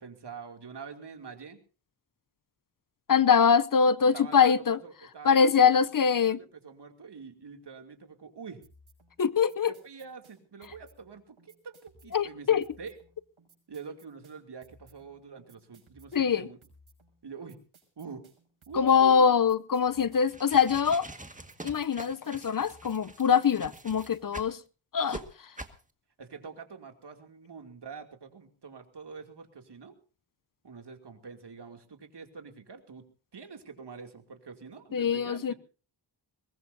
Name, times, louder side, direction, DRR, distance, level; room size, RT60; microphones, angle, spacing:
voice 1, 0.0-1.6 4.1-8.6 9.6-13.0 13.7-16.6 17.2-17.6 18.0-18.2 18.7-19.3 26.2-30.0 30.6-33.0 33.3-35.5, right 5 dB, 60° right, 2.7 m, -45 dB
voice 2, 3.1-4.8 5.2-6.4 9.2-9.7 12.1-12.6 16.1-16.5 18.8-21.1 21.6-24.6 24.9-25.2 34.9-35.5, left 6 dB, 45° left, 0.7 m, -23 dB
sound 1, 8.6-24.5, right 1 dB, 80° right, 6.3 m, -61 dB
sound 2, 20.2-24.6 25.1-25.2 25.6-25.8, right 2 dB, 15° right, 1.7 m, -44 dB
22.5 x 20.0 x 2.7 m
wide cardioid pair, 80°, 47 cm